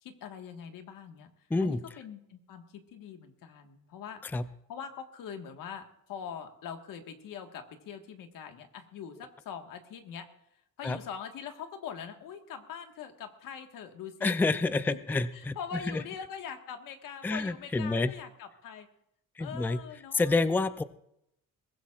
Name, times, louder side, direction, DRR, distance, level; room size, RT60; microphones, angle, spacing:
voice 1, 0.0-4.2 4.7-10.3 10.5-14.4 14.9-18.9 19.4-20.3, left 7 dB, 85° left, 5 dB, 1.6 m, -43 dB
voice 2, 14.2-15.6 15.9-16.0 17.2-18.1 19.4-19.8 20.1-20.8, left 3 dB, 5° left, 13 dB, 0.4 m, -28 dB
21.5 x 15.5 x 2.4 m, 0.77 s
cardioid pair, 135°, 32 cm